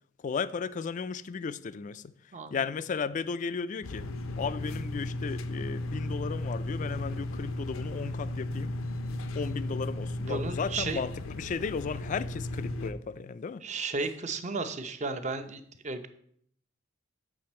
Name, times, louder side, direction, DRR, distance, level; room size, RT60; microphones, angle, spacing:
voice 1, 0.2-2.1 2.5-4.1 4.4-8.7 9.3-13.6, left 5 dB, 40° left, 0.3 m, -35 dB
sound 1, 3.8-12.9, left 1 dB, 85° left, 0.6 m, -35 dB
voice 2, 10.3-11.0 13.6-16.1, right 3 dB, 35° right, 0.7 m, -34 dB
7.6 x 6.0 x 4.3 m
head